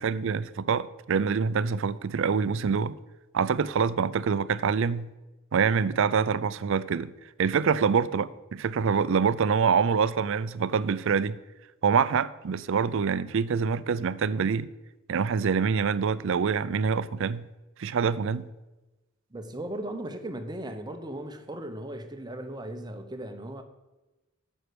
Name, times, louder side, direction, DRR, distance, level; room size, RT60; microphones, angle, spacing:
voice 1, 0.0-3.0 3.3-5.1 5.5-7.1 7.4-11.4 11.8-14.7 15.1-17.5 17.8-18.5, right 6 dB, 65° right, 0.4 m, -25 dB
voice 2, 19.3-23.6, right 1 dB, 20° right, 0.9 m, -37 dB
9.2 x 6.5 x 6.8 m
head